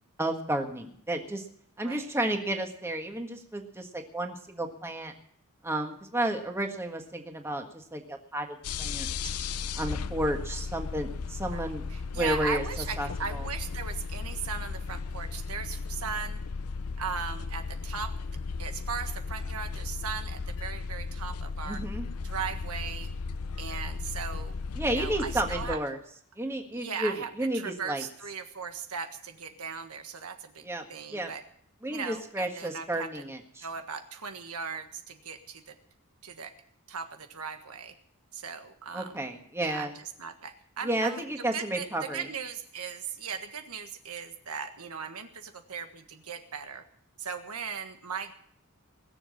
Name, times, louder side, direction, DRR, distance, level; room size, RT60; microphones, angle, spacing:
voice 1, 0.2-1.4 1.8-5.1 5.6-9.3 9.7-11.8 12.1-12.6 13.0-13.4 21.6-22.0 24.8-26.0 26.4-28.0 30.6-30.8 31.1-31.3 31.8-33.7 38.9-39.9 40.8-42.3, right 1 dB, 10° right, 3 dB, 1.6 m, -32 dB
sound 1, 8.6-25.8, left 4 dB, 85° left, 0.7 m, -35 dB
voice 2, 11.5-16.4 17.0-18.2 18.6-21.8 22.2-23.1 23.6-24.6 24.8-25.8 26.7-31.4 31.9-33.2 33.6-35.8 36.2-36.5 36.9-37.9 38.3-39.3 39.6-41.2 41.5-46.9 47.2-48.3, right 6 dB, 85° right, 7 dB, 1.5 m, -38 dB
20.5 x 7.2 x 8.3 m, 0.63 s
head